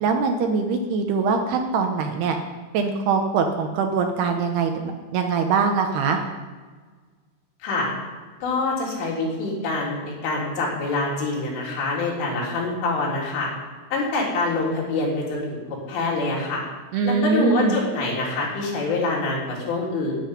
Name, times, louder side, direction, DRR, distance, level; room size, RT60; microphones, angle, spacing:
voice 1, 0.0-2.4 2.7-4.8 5.1-6.2 16.9-17.8, right 5 dB, 70° right, 4 dB, 2.7 m, -22 dB
voice 2, 8.4-13.5 13.9-15.6 15.9-16.6 17.0-20.2, left 3 dB, 85° left, -3 dB, 5.8 m, -25 dB
10.5 x 9.6 x 9.6 m, 1.4 s
omnidirectional pair, 5.5 m